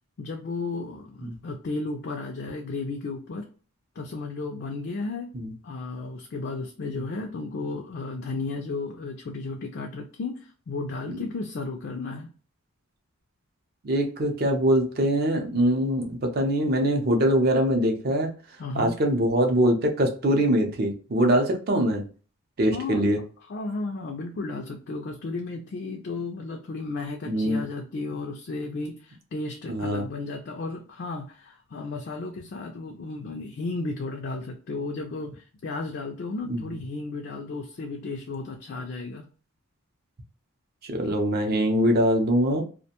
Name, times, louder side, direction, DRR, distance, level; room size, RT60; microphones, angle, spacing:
voice 1, 0.2-3.4 4.0-5.3 5.6-12.3 18.6-19.0 22.7-23.1 23.5-39.3, left 3 dB, 50° left, 2 dB, 0.3 m, -34 dB
voice 2, 13.8-18.3 18.7-22.0 22.6-23.2 27.3-27.6 29.7-30.1 36.5-36.6 40.8-42.6, equal, 45° right, 3 dB, 0.5 m, -23 dB
2.4 x 2.1 x 2.8 m, 0.38 s
head